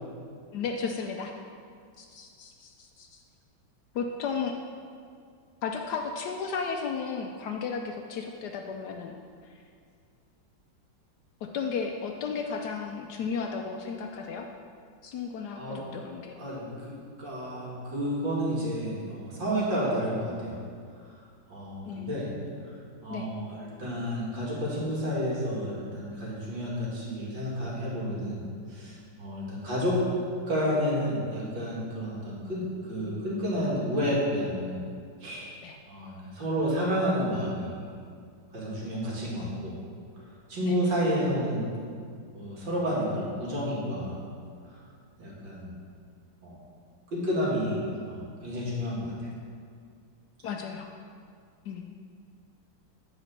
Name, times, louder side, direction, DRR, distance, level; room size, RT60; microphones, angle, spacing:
voice 1, 0.5-1.3 2.0-3.2 3.9-4.5 5.6-9.1 11.4-14.5 15.0-16.3 21.9-22.1 23.1-23.3 35.6-35.8 40.6-40.8 50.4-50.9 51.7-51.8, left 5 dB, 70° left, 3 dB, 1.1 m, -34 dB
voice 2, 16.4-20.6 21.5-22.3 23.0-28.4 28.7-30.0 30.5-34.8 35.2-35.5 35.9-37.7 38.5-39.7 40.5-41.7 42.3-44.2 45.2-45.8 46.4-46.5 47.1-49.1, equal, 80° right, -6 dB, 2.9 m, -30 dB
9.9 x 4.9 x 6.5 m, 2.2 s
omnidirectional pair, 2.0 m